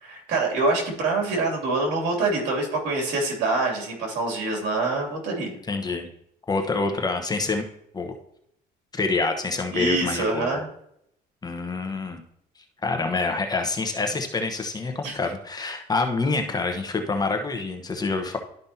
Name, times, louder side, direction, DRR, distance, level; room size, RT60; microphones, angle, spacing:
voice 1, 0.0-5.6 9.7-10.7 15.0-15.2, right 3 dB, 80° right, 0 dB, 2.9 m, -25 dB
voice 2, 5.7-6.1 6.5-7.6 7.9-8.1 8.9-10.6 11.4-12.2 12.8-18.4, left 3 dB, 25° left, 5 dB, 1.1 m, -26 dB
12.0 x 5.3 x 2.8 m, 0.74 s
cardioid pair, 110°, 17 cm